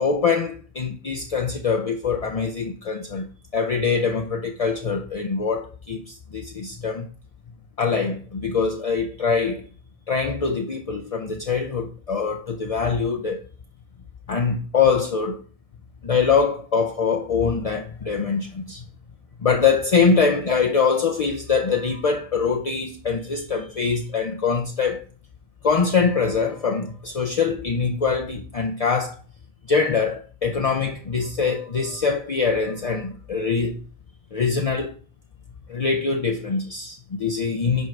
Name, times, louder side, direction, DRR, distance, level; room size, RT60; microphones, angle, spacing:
voice 1, 0.0-3.3 3.5-7.1 7.8-9.6 10.1-13.4 14.3-15.4 16.0-18.8 19.4-25.1 25.6-29.2 29.7-33.8 34.3-35.0 35.7-37.9, left 5 dB, 45° left, 0.5 m, -23 dB
5.4 x 4.5 x 6.0 m
omnidirectional pair, 1.3 m